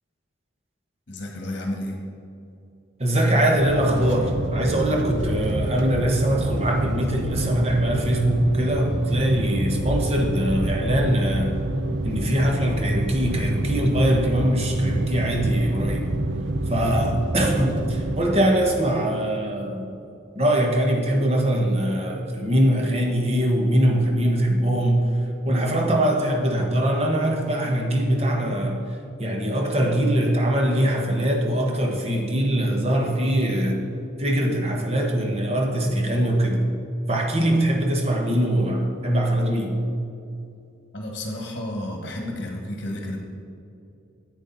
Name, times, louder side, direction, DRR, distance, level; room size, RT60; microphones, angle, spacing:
voice 1, 1.1-2.0 40.9-43.2, left 1 dB, 45° left, 1 dB, 1.3 m, -31 dB
voice 2, 3.0-11.5 12.0-16.1 16.7-20.0 20.3-25.1 25.4-28.8 29.2-33.8 34.2-36.6 37.1-39.7, right 1 dB, 30° right, 1 dB, 1.2 m, -22 dB
sound 1, 3.6-18.4, right 1 dB, 60° right, 0.8 m, -27 dB
9.9 x 9.1 x 4.0 m, 2.6 s
head